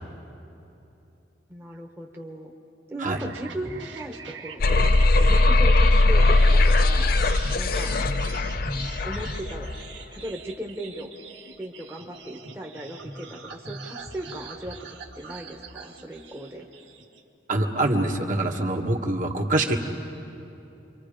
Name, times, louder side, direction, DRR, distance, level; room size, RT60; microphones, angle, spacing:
voice 1, 1.5-2.5 2.9-4.6 5.3-7.2 7.6-8.0 9.0-9.7 10.1-11.1 11.6-14.8 15.1-16.7, right 1 dB, 15° right, 0 dB, 1.2 m, -37 dB
sound 1, 3.1-17.2, right 3 dB, 85° right, 2.1 m, -40 dB
sound 2, 4.6-9.7, left 2 dB, 55° left, 0.7 m, -19 dB
voice 2, 17.5-19.8, right 2 dB, 45° right, 1 dB, 1.7 m, -24 dB
28.5 x 24.0 x 5.1 m, 2.9 s
head